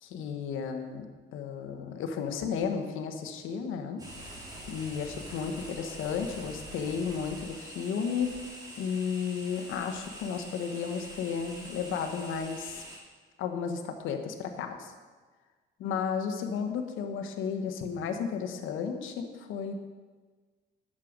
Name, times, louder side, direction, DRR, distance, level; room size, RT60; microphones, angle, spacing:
voice 1, 0.0-8.4 8.8-12.8 13.4-14.9 15.8-19.7, left 6 dB, 90° left, 6 dB, 1.1 m, -33 dB
sound 1, 4.0-13.0, right 1 dB, 20° right, 3.1 m, -45 dB
10.0 x 7.5 x 5.1 m, 1.4 s
cardioid pair, 90°, 20 cm